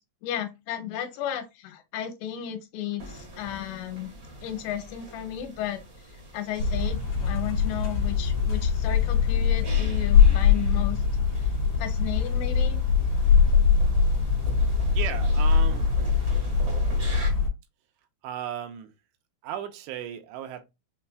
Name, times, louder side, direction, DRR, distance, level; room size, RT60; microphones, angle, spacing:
voice 1, 0.2-4.1 4.4-5.8 6.3-11.0 11.8-12.8 13.4-13.8, left 11 dB, 80° left, 2.8 m, -34 dB
sound 1, 3.0-17.3, right 2 dB, 60° right, 0.8 m, -44 dB
sound 2, 6.6-17.5, left 6 dB, 60° left, 2.0 m, -22 dB
voice 2, 14.9-16.1 18.2-18.9 19.4-20.7, right 10 dB, 80° right, 2.7 m, -36 dB
6.8 x 2.4 x 2.2 m
omnidirectional pair, 5.0 m